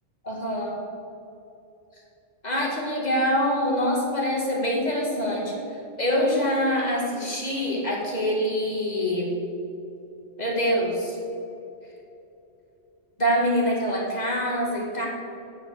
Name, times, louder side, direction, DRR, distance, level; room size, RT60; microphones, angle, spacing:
voice 1, 0.2-0.8 2.4-9.3 10.4-11.2 13.2-15.1, equal, 35° left, -2 dB, 2.2 m, -25 dB
9.0 x 7.9 x 6.6 m, 2.8 s
omnidirectional pair, 1.3 m